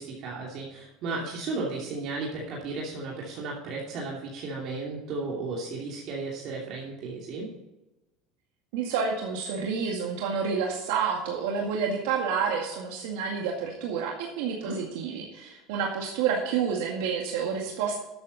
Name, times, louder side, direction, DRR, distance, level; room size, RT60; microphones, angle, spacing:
voice 1, 0.0-7.5 14.6-14.8, right 3 dB, 55° right, -3 dB, 2.7 m, -34 dB
voice 2, 8.7-18.0, right 6 dB, 85° right, 0 dB, 2.0 m, -29 dB
12.5 x 8.8 x 4.1 m, 1.0 s
supercardioid pair, 130°, 0 cm